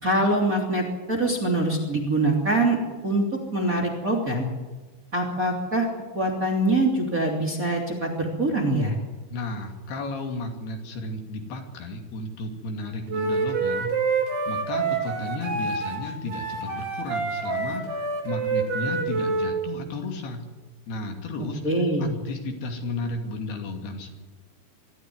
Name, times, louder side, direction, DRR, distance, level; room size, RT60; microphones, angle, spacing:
voice 1, 0.0-2.8 3.0-3.2 3.5-4.5 5.1-5.9 6.1-8.9 21.6-22.2, right 1 dB, 20° right, 0 dB, 2.9 m, -24 dB
voice 2, 9.3-13.9 14.5-20.4 20.9-21.6 22.0-24.1, left 2 dB, 65° left, 4 dB, 4.5 m, -33 dB
Wind instrument woodwind instrument, 13.1-19.5, right 4 dB, 65° right, 5.2 m, -27 dB
23.5 x 14.5 x 9.7 m, 1.3 s
omnidirectional pair, 5.0 m